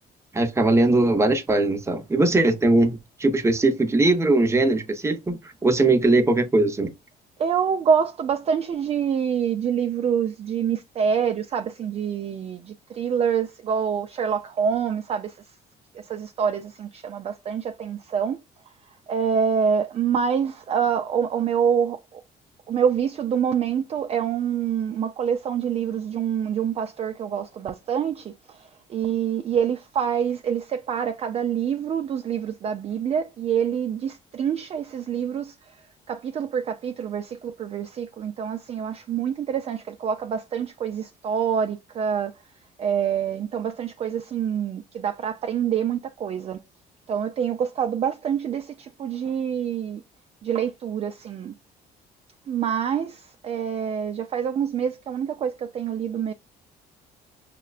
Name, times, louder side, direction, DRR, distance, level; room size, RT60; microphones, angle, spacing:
voice 1, 0.3-6.9, right 2 dB, 15° right, 0.8 m, -20 dB
voice 2, 7.4-15.4 15.9-18.4 19.1-22.2 22.7-35.8 36.1-42.4 42.8-46.6 47.1-50.0 50.4-51.5 52.5-56.3, right 7 dB, 35° right, 0.4 m, -26 dB
5.7 x 2.1 x 2.4 m
cardioid pair, 110°, 17 cm